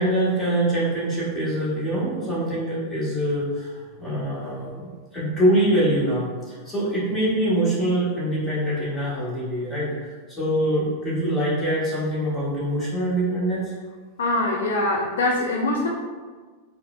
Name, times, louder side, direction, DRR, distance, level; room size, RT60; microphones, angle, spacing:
voice 1, 0.0-4.9 5.1-13.7, right 1 dB, 5° left, -9 dB, 1.4 m, -24 dB
voice 2, 14.2-15.9, left 2 dB, 60° left, -1 dB, 0.3 m, -23 dB
4.5 x 2.1 x 2.5 m, 1.4 s
figure-of-eight pair, 90°, 0 cm